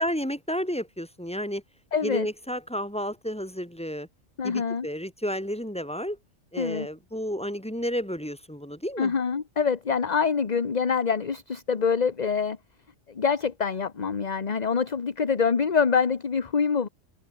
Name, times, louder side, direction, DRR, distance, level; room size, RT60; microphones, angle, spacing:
voice 1, 0.0-1.6 2.0-4.1 4.4-6.2 6.5-9.1, equal, 5° left, 5.1 m, -31 dB
voice 2, 1.9-2.3 4.4-4.9 6.6-6.9 9.0-12.6 13.1-16.9, left 6 dB, 35° left, 1.1 m, -25 dB
omnidirectional pair, 1.3 m